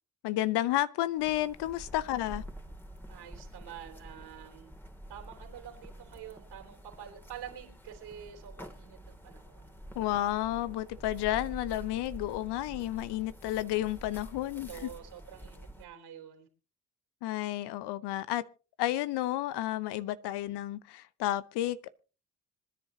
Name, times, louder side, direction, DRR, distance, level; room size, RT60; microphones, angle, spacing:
voice 1, 0.2-2.4 9.9-14.9 17.2-18.4 18.8-21.9, left 14 dB, 70° left, 0.9 m, -31 dB
sound 1, 1.2-15.9, equal, 5° left, 2.5 m, -48 dB
voice 2, 3.1-4.7 5.1-9.8 14.7-16.5, right 9 dB, 70° right, 3.6 m, -47 dB
26.0 x 10.0 x 2.8 m
hypercardioid pair, 40°, 42 cm